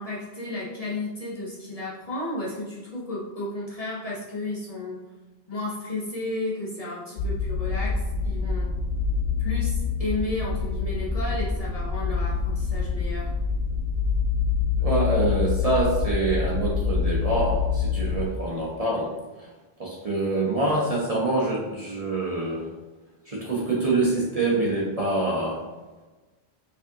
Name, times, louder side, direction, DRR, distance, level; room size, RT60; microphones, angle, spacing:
voice 1, 0.0-5.0 5.5-8.7 9.4-13.3, left 2 dB, 40° left, -6 dB, 0.8 m, -33 dB
sound 1, 7.2-18.3, left 5 dB, 70° left, 0.9 m, -26 dB
voice 2, 14.8-19.1 19.4-19.5 19.8-22.7 23.3-25.6, right 2 dB, 40° right, -5 dB, 0.7 m, -25 dB
4.8 x 2.7 x 2.6 m, 1.2 s
omnidirectional pair, 1.1 m